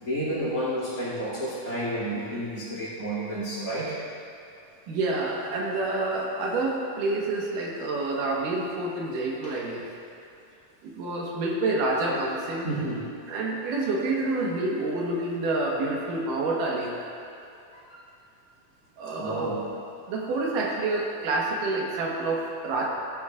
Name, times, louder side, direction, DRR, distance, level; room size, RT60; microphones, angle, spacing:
voice 1, 0.0-4.0 9.4-9.6 12.6-13.0 17.7-18.0 19.2-19.7, right 1 dB, 30° left, -8 dB, 2.7 m, -31 dB
voice 2, 4.9-9.8 10.8-12.9 13.3-16.9 19.0-19.5 20.1-22.9, right 2 dB, 85° right, -3 dB, 2.9 m, -28 dB
15.0 x 10.0 x 2.5 m, 2.7 s
omnidirectional pair, 3.7 m